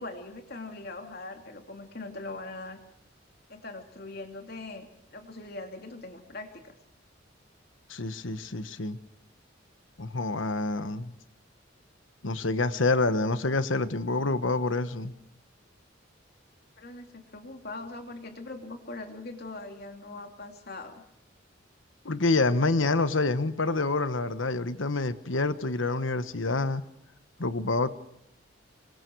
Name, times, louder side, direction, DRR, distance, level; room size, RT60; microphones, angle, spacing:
voice 1, 0.0-2.8 3.5-6.8 16.8-21.0, left 2 dB, 55° left, 4 dB, 3.0 m, -41 dB
voice 2, 7.9-9.0 10.0-11.1 12.2-15.1 22.0-26.8 27.4-27.9, left 3 dB, 80° left, 12 dB, 1.3 m, -27 dB
27.0 x 24.0 x 4.7 m, 0.78 s
head